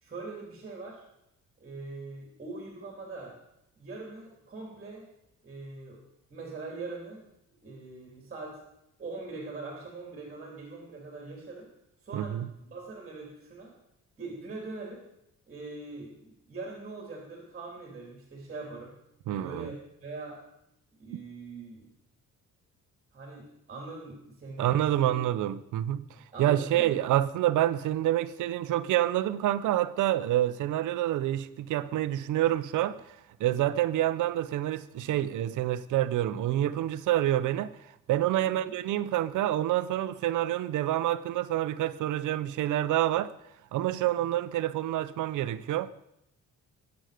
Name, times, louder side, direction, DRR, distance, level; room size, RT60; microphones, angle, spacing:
voice 1, 0.0-1.0 1.6-3.3 3.8-5.1 5.4-6.0 6.3-7.2 7.6-8.6 9.0-11.7 12.0-13.7 14.2-15.0 15.5-18.9 19.2-20.4 21.0-21.9 23.1-25.2 26.3-27.0 38.4-38.7 44.2-44.3, right 3 dB, 25° right, 3.1 m, -42 dB
voice 2, 12.1-12.5 19.3-19.7 24.6-26.0 26.4-33.1 33.4-37.8 38.1-43.3 43.7-45.9, right 13 dB, 75° right, 0.8 m, -27 dB
22.0 x 8.2 x 5.1 m
cardioid pair, 180°, 30 cm